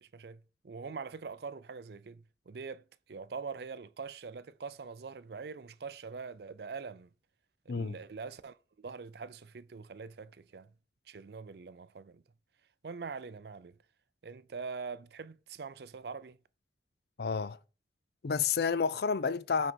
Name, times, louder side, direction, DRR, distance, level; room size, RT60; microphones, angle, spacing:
voice 1, 0.0-7.1 7.7-10.7 11.1-12.2 12.8-13.8 14.2-16.4, right 5 dB, 60° right, 0.5 m, -43 dB
voice 2, 17.2-17.6 18.2-19.7, left 5 dB, 60° left, 0.5 m, -30 dB
6.1 x 5.3 x 6.1 m
head